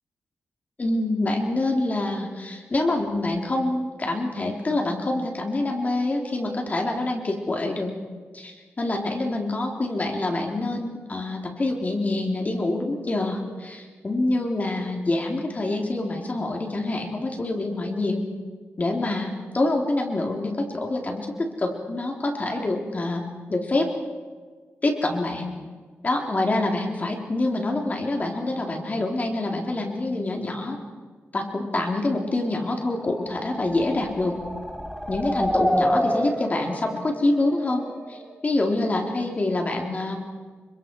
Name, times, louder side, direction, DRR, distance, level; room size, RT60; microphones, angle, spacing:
voice 1, 0.8-7.9 8.3-18.2 18.8-23.9 24.8-25.5 26.0-30.8 31.3-34.4 35.1-37.8 38.1-40.2, left 2 dB, 35° left, 1 dB, 3.9 m, -26 dB
sound 1, 32.5-38.3, equal, 5° left, 2.7 m, -29 dB
29.0 x 25.5 x 4.8 m, 1.5 s
wide cardioid pair, 95°, 5 cm